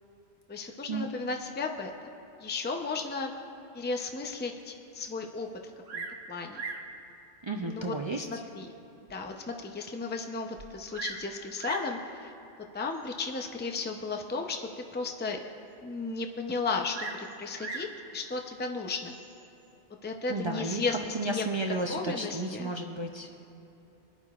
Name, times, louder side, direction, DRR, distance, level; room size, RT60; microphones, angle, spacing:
voice 1, 0.5-1.9 2.4-3.3 3.7-5.5 5.9-6.6 7.6-8.7 9.1-12.3 12.7-15.4 15.8-17.1 17.4-19.1 20.0-21.4 21.9-22.7, left 4 dB, 15° left, 3 dB, 0.5 m, -34 dB
Bird vocalization bird call bird song, 5.8-6.2 6.5-6.9 7.8-7.9 8.5-8.6 9.1-9.2 9.4-9.5 10.6-11.3 11.6-12.0 12.9-13.3 16.9-18.0 19.0-19.5, right 3 dB, 75° right, 1.1 m, -39 dB
voice 2, 7.4-8.4 20.3-23.3, right 2 dB, 40° right, 2 dB, 0.4 m, -33 dB
21.5 x 10.5 x 2.4 m, 3.0 s
omnidirectional pair, 1.1 m